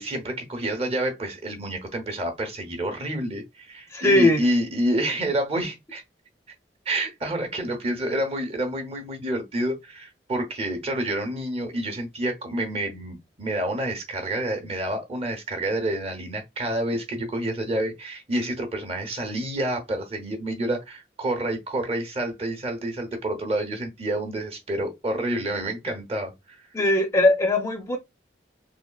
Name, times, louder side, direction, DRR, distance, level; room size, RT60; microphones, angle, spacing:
voice 1, 0.0-6.0 6.9-26.6, right 1 dB, 35° right, 0.7 m, -28 dB
voice 2, 3.9-4.4 26.7-28.0, left 2 dB, 15° left, 0.4 m, -20 dB
3.5 x 2.2 x 2.3 m
head